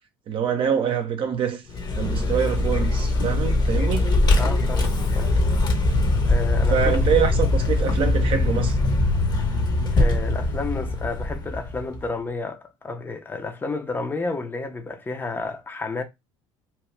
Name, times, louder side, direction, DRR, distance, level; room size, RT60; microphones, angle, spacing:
voice 1, 0.3-1.6 1.9-4.2 6.7-8.8, right 7 dB, 50° right, 0.7 m, -25 dB
Vehicle, 1.7-12.0, left 2 dB, 40° left, 1.0 m, -22 dB
voice 2, 4.3-5.3 6.2-7.0 9.9-16.0, left 3 dB, 20° left, 0.7 m, -31 dB
2.9 x 2.3 x 3.3 m
hypercardioid pair, 75°, 11 cm